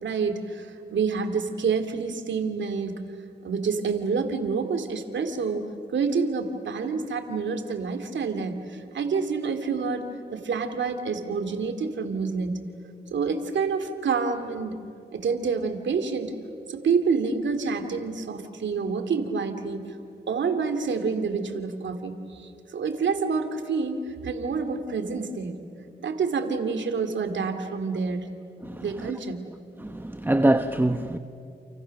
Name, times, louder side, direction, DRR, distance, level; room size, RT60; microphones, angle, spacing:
voice 1, 0.0-3.1 3.4-10.1 10.3-12.6 13.1-14.8 15.1-16.3 16.7-19.8 20.3-25.6 26.0-28.3 28.8-29.4, right 5 dB, 80° right, 2.5 m, -28 dB
voice 2, 28.6-29.1 29.8-31.2, right 1 dB, 10° right, 1.0 m, -24 dB
29.5 x 29.0 x 6.6 m
cardioid pair, 65°, 19 cm